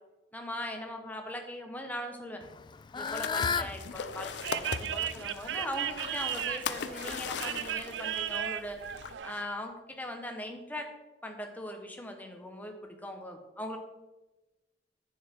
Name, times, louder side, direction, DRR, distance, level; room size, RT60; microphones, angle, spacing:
voice 1, 0.3-2.4 2.9-8.8 9.2-10.9 11.2-13.8, left 1 dB, 10° left, 3 dB, 1.2 m, -40 dB
Fowl / Bird, 2.4-7.7, left 5 dB, 25° left, 0.3 m, -37 dB
sound 1, 3.0-9.1, left 5 dB, 75° left, 0.6 m, -39 dB
sound 2, 4.3-9.4, right 10 dB, 80° right, 0.4 m, -36 dB
10.0 x 7.7 x 4.6 m, 1.1 s
head